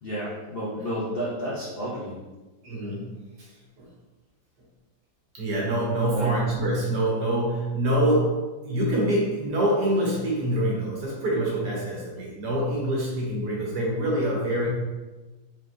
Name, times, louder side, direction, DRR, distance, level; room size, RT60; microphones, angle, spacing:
voice 1, 0.0-2.2 6.1-6.3, equal, 75° left, -7 dB, 0.5 m, -31 dB
voice 2, 2.6-3.1 3.4-3.5 3.8-3.9 5.3-14.7, right 1 dB, 60° right, -3 dB, 1.5 m, -25 dB
4.4 x 3.7 x 2.5 m, 1.2 s
omnidirectional pair, 2.1 m